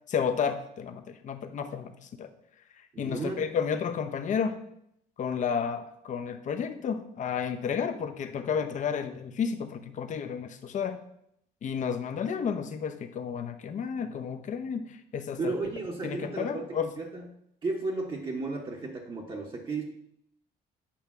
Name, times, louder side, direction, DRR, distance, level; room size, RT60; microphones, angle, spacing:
voice 1, 0.1-2.3 2.8-4.6 5.2-11.0 11.6-15.5 16.0-16.9, left 7 dB, 45° left, 7 dB, 0.8 m, -32 dB
voice 2, 2.9-3.5 15.4-17.3 17.6-19.8, right 3 dB, 30° right, -1 dB, 1.1 m, -34 dB
8.6 x 3.4 x 5.9 m, 0.74 s
cardioid pair, 110°, 17 cm